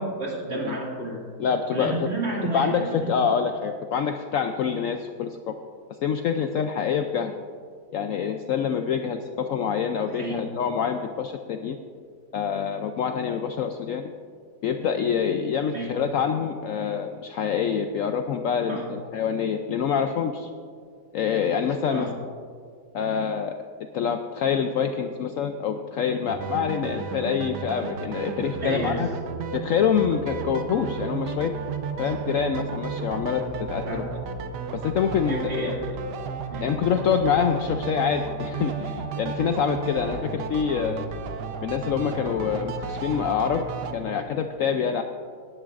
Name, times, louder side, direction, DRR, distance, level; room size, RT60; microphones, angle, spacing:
voice 1, 0.0-1.3 1.7-3.1 10.0-10.4 15.7-16.0 18.7-18.9 21.9-22.1 28.6-29.1 33.9-34.0 35.3-35.9 36.5-36.7, right 1 dB, 40° right, -3 dB, 2.5 m, -30 dB
voice 2, 1.4-2.1 2.5-5.5 6.0-7.4 7.9-11.8 12.3-14.1 14.6-20.5 21.1-22.1 22.9-23.5 23.9-29.1 29.5-31.5 32.0-33.4 33.7-34.0 34.7-35.7 36.6-41.0 41.6-43.6 43.9-45.0, left 7 dB, 70° left, 6 dB, 0.8 m, -26 dB
sound 1, 26.3-43.9, right 5 dB, 80° right, 1.4 m, -33 dB
18.0 x 11.0 x 2.5 m, 2.1 s
omnidirectional pair, 1.8 m